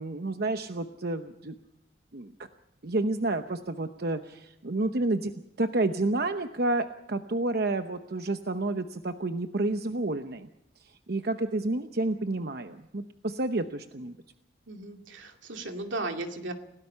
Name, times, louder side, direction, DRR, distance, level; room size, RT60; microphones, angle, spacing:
voice 1, 0.0-1.5 2.1-2.3 2.8-10.5 10.8-14.1, right 2 dB, 55° right, 8 dB, 0.9 m, -30 dB
voice 2, 14.7-16.5, right 2 dB, 90° right, 4 dB, 2.5 m, -36 dB
29.5 x 17.5 x 5.7 m, 0.82 s
head